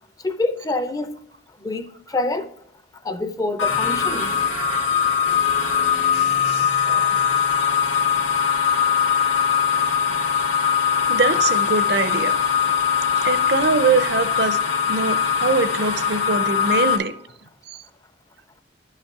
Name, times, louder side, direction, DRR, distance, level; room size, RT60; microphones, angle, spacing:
voice 1, 0.2-1.2 1.6-2.5 3.0-4.4 6.6-6.7, left 2 dB, 20° left, 0.4 m, -26 dB
sound 1, 3.6-17.0, left 7 dB, 90° left, 1.8 m, -21 dB
voice 2, 6.1-7.2 11.1-12.4 13.2-14.6 14.9-17.1 17.7-17.8, right 4 dB, 55° right, 0.6 m, -23 dB
11.5 x 5.6 x 4.6 m
head